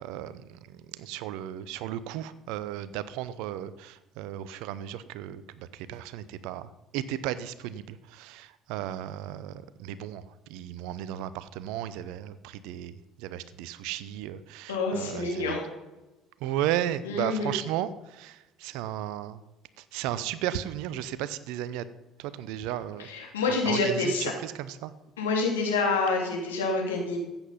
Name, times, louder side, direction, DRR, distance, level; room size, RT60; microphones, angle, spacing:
voice 1, 0.0-10.2 10.5-15.6 16.4-19.4 19.8-21.9 22.2-23.1 23.5-24.9, right 12 dB, 65° right, 15 dB, 0.7 m, -35 dB
voice 2, 14.7-15.6 17.0-17.5 23.0-24.3 25.2-27.2, left 3 dB, 80° left, 0 dB, 2.8 m, -27 dB
14.0 x 8.9 x 5.8 m, 1.0 s
hypercardioid pair, 55°, 0 cm